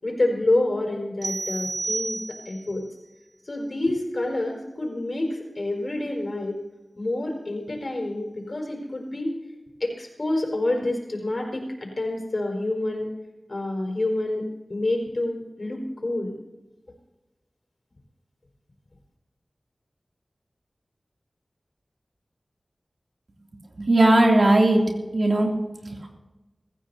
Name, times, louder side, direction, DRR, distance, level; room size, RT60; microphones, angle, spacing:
voice 1, 0.0-2.8 3.5-6.6 7.0-9.3 9.8-13.1 13.5-14.4 14.7-16.3, left 2 dB, 50° left, 1 dB, 5.2 m, -27 dB
sound 1, 1.2-2.7, right 3 dB, 75° right, 2.2 m, -31 dB
voice 2, 23.8-24.8 25.1-25.5 25.8-26.1, right 1 dB, 60° right, 0 dB, 2.9 m, -18 dB
24.5 x 15.0 x 2.8 m, 1.1 s
wide cardioid pair, 65°, 0 cm